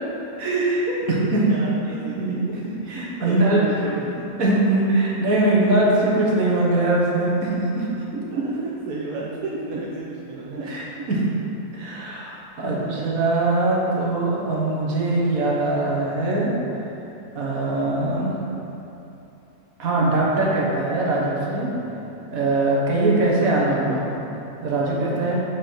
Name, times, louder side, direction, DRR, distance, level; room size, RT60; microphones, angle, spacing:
voice 1, 0.4-0.9 1.3-2.4 2.6-3.6 4.4-7.9 8.3-8.4 10.6-11.2 11.7-16.5 17.3-18.3 19.8-21.7 22.3-24.1 24.6-25.4, right 2 dB, 70° right, -4 dB, 1.6 m, -22 dB
voice 2, 1.5-2.5 3.2-4.4 8.3-10.7 12.6-13.4 16.7-16.9 21.7-22.1 24.2-24.5, right 3 dB, 85° right, -4 dB, 1.2 m, -34 dB
7.2 x 4.9 x 4.5 m, 2.9 s
omnidirectional pair, 1.5 m